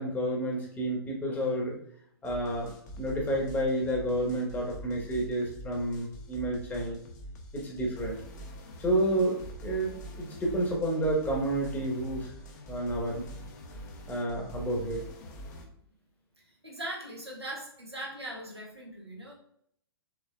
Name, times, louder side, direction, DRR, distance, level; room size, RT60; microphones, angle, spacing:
voice 1, 0.0-1.8 2.2-2.7 3.0-7.0 7.5-8.1 8.8-12.3 12.7-13.2 14.1-15.0, right 1 dB, 15° left, -1 dB, 1.1 m, -30 dB
sound 1, 2.2-15.6, equal, 45° left, 0.9 m, -44 dB
voice 2, 16.4-19.3, right 1 dB, 90° right, -3 dB, 1.4 m, -40 dB
5.7 x 3.3 x 2.2 m, 0.66 s
figure-of-eight pair, 110°, 13 cm